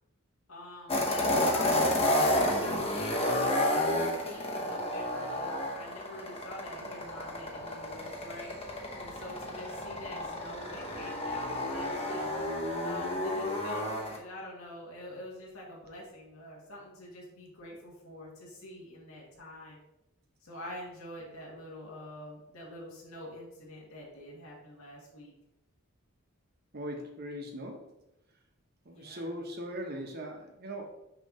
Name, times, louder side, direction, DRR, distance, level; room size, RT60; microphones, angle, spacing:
voice 1, 0.5-8.5 9.0-12.2 12.8-13.8 14.1-19.8 20.4-25.3 28.9-29.6, left 1 dB, 70° left, -4 dB, 1.9 m, -45 dB
sound 1, 0.9-14.2, left 1 dB, 25° left, 0.9 m, -31 dB
voice 2, 26.7-27.9 28.8-30.9, equal, 45° right, 3 dB, 1.0 m, -39 dB
6.4 x 3.1 x 5.4 m, 0.89 s
head